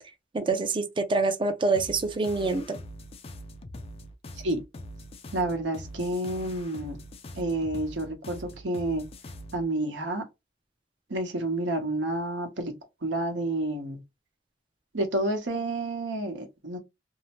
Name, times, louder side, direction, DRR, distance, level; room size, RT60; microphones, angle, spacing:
voice 1, 0.3-2.8, right 3 dB, 30° right, 0.5 m, -26 dB
sound 1, 1.7-9.7, equal, 35° left, 0.4 m, -43 dB
voice 2, 5.3-7.0 7.3-9.0 9.5-10.2 11.1-12.7 13.0-14.0 14.9-16.8, right 1 dB, 85° right, 1.0 m, -29 dB
2.7 x 2.0 x 2.9 m
head